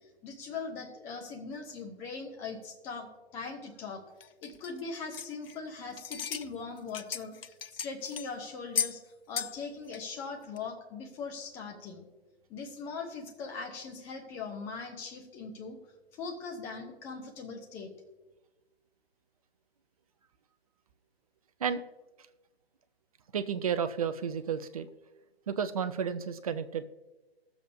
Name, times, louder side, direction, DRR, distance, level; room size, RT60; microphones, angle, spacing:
voice 1, 0.2-4.0 4.4-9.0 9.3-12.0 12.5-15.8 16.1-17.9, left 4 dB, 10° left, 2 dB, 0.6 m, -40 dB
sound 1, 4.2-5.7 6.0-6.5 6.8-8.3 8.7-9.0 9.4-9.6 9.9-10.0 10.6-10.7, left 7 dB, 65° left, 0.5 m, -35 dB
voice 2, 23.3-24.9 25.5-26.9, right 7 dB, 35° right, 11 dB, 0.5 m, -32 dB
21.0 x 7.1 x 2.6 m, 1.1 s
figure-of-eight pair, 135°, 31 cm